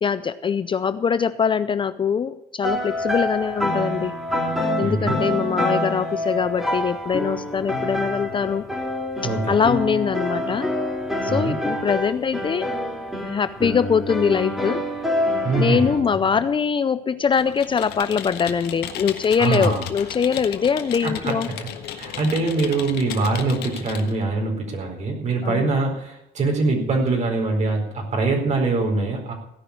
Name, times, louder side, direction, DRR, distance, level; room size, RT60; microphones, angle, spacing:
voice 1, 0.0-4.1 4.8-8.7 9.5-10.7 11.2-12.7 13.2-14.8 15.6-21.5 25.4-25.7, left 6 dB, 30° left, 13 dB, 0.5 m, -22 dB
sound 1, 2.6-16.0, left 1 dB, ahead, 4.0 m, -26 dB
voice 2, 4.8-5.2 9.2-9.7 11.3-11.5 15.4-16.0 19.4-19.9 21.0-29.3, right 3 dB, 45° right, 1 dB, 4.4 m, -23 dB
Computer keyboard, 17.3-24.1, left 10 dB, 80° left, 1.5 m, -35 dB
16.5 x 6.0 x 9.8 m, 0.87 s
cardioid pair, 110°, 17 cm